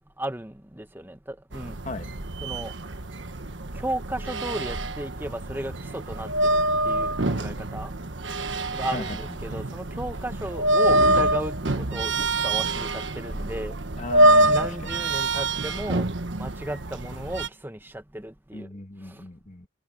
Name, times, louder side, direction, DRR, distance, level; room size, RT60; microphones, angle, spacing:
voice 1, 0.2-1.7 2.4-2.7 3.7-7.9 8.7-13.7 14.4-16.1 16.4-18.7, right 1 dB, 10° right, 1.1 m, -35 dB
sound 1, 1.5-17.5, right 1 dB, 90° right, 1.5 m, -25 dB
voice 2, 14.0-15.0 18.5-19.7, left 2 dB, 40° left, 1.7 m, -36 dB
head